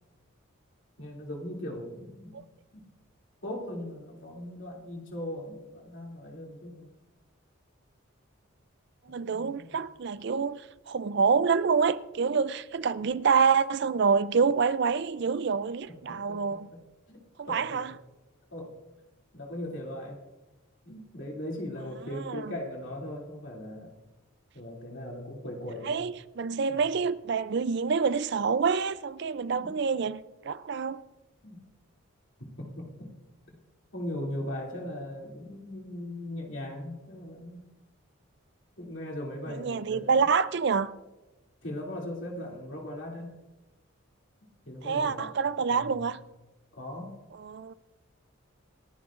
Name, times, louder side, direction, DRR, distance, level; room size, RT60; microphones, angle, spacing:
voice 1, 1.0-2.5 2.7-2.9 3.4-6.9 9.1-9.8 15.9-16.8 17.1-17.2 17.5-18.0 18.5-18.8 19.3-20.2 20.8-23.9 24.5-26.0 26.7-26.8 29.6-29.8 31.4-31.6 32.4-33.2 33.5-33.6 33.9-37.6 38.8-40.3 41.6-43.3 44.4-45.4 45.7-46.1 46.7-47.2, left 1 dB, 60° left, 2.7 m, -39 dB
voice 2, 9.1-10.6 10.9-16.7 17.4-17.9 22.2-22.5 25.9-31.0 39.6-40.9 44.9-46.2 47.4-47.7, right 5 dB, 50° right, 0.4 m, -27 dB
28.0 x 11.0 x 2.5 m
head